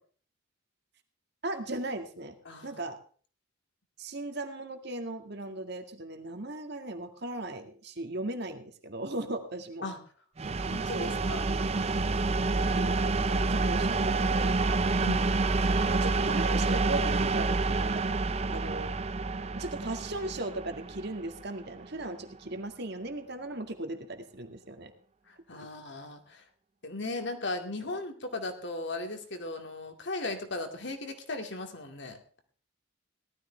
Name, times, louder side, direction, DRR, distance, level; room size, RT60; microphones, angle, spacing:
voice 1, 1.4-2.3 2.6-3.0 4.0-9.9 10.9-11.1 12.7-14.5 15.7-18.0 18.5-18.9 19.6-24.9, right 2 dB, 55° right, 6 dB, 1.9 m, -37 dB
voice 2, 2.5-2.8 9.8-10.0 10.7-11.4 15.0-15.3 25.3-26.4 26.8-32.2, left 2 dB, 55° left, 5 dB, 2.3 m, -37 dB
sound 1, 10.4-22.0, right 3 dB, 30° right, 0.6 m, -28 dB
18.0 x 13.0 x 3.4 m, 0.42 s
head